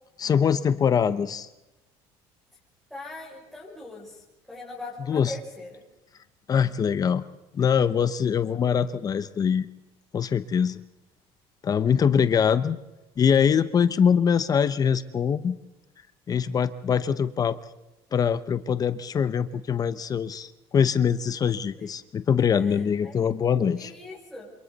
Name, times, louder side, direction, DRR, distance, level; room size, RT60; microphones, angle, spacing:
voice 1, 0.2-1.5 5.1-5.3 6.5-7.2 7.5-9.7 10.1-10.8 11.6-12.8 13.2-15.6 16.3-17.6 18.1-23.9, left 7 dB, 30° left, 13 dB, 0.8 m, -23 dB
voice 2, 2.9-5.8 21.8-21.9 22.5-24.5, left 2 dB, ahead, -8 dB, 6.6 m, -41 dB
28.0 x 25.0 x 4.1 m, 1.0 s
cardioid pair, 130°, 12 cm